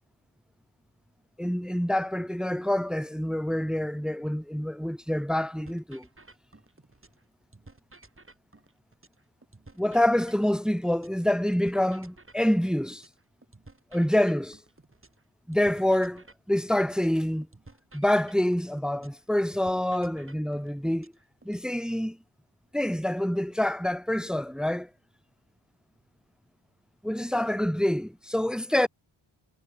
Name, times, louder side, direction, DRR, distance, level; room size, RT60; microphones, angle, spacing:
voice 1, 1.4-6.1 9.8-13.0 13.9-14.6 15.5-17.5 17.9-21.1 21.4-22.2 22.7-24.9 27.0-28.9, left 1 dB, ahead, 0.8 m, -26 dB
sound 1, 5.6-7.2 7.5-11.2 11.5-15.2 15.5-19.2 19.5-21.6, right 2 dB, 25° right, 6.8 m, -54 dB
cardioid pair, 75°, 49 cm